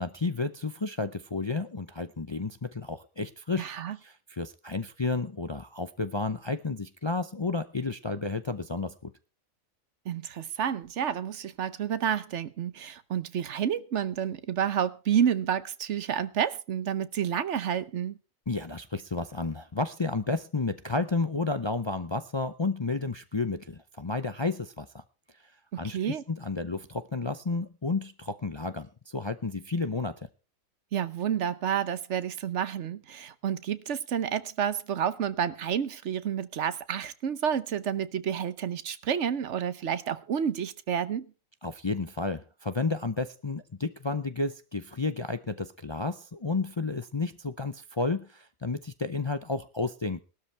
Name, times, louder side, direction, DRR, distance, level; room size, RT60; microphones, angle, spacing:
voice 1, 0.0-3.7 4.0-9.1 18.5-25.0 25.8-30.3 41.6-50.2, left 3 dB, 35° left, 0.4 m, -32 dB
voice 2, 3.6-4.0 10.0-18.2 25.7-26.2 30.9-41.3, right 8 dB, 60° right, 1.1 m, -30 dB
18.0 x 12.5 x 3.3 m
omnidirectional pair, 1.4 m